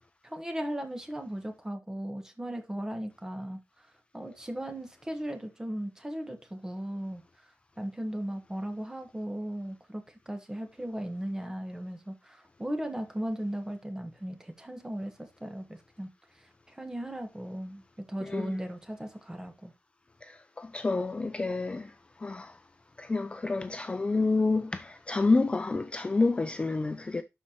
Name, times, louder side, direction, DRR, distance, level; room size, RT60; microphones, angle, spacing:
voice 1, 0.2-7.2 7.8-16.1 16.4-17.8 18.1-19.7, right 1 dB, 10° right, 1.2 m, -37 dB
voice 2, 18.2-18.5 20.2-21.9 22.2-22.6 23.0-27.2, left 3 dB, 20° left, 0.3 m, -28 dB
11.5 x 4.3 x 2.9 m
wide cardioid pair, 180°, 5 cm